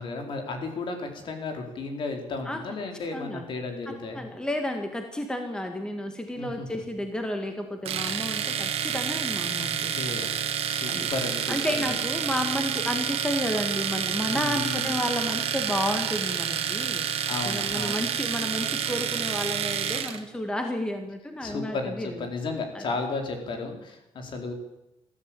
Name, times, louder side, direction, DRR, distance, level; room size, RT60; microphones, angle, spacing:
voice 1, 0.0-4.2 6.4-6.7 9.9-12.0 14.3-14.9 17.3-18.0 21.4-24.5, left 3 dB, 55° left, 4 dB, 4.4 m, -34 dB
voice 2, 3.1-3.5 3.9-10.0 10.9-11.1 11.5-22.1 22.7-22.9, left 1 dB, 10° left, 5 dB, 1.8 m, -31 dB
Domestic sounds home sounds, 7.8-20.2, right 8 dB, 70° right, 2.1 m, -29 dB
21.5 x 14.0 x 9.0 m, 0.91 s
wide cardioid pair, 170°, 10 cm